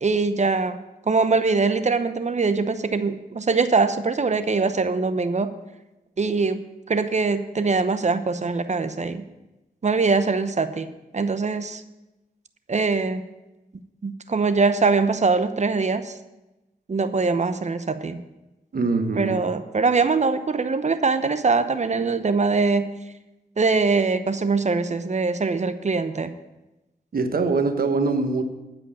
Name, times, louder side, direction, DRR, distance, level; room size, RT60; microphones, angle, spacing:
voice 1, 0.0-5.5 6.2-9.2 9.8-11.8 12.7-13.2 14.0-16.1 16.9-18.2 19.2-22.9 23.6-26.3, right 4 dB, 45° right, 11 dB, 0.9 m, -22 dB
voice 2, 18.7-19.4 27.1-28.4, right 3 dB, 60° right, 7 dB, 1.3 m, -23 dB
12.0 x 5.2 x 8.7 m, 1.0 s
cardioid pair, 50°, 17 cm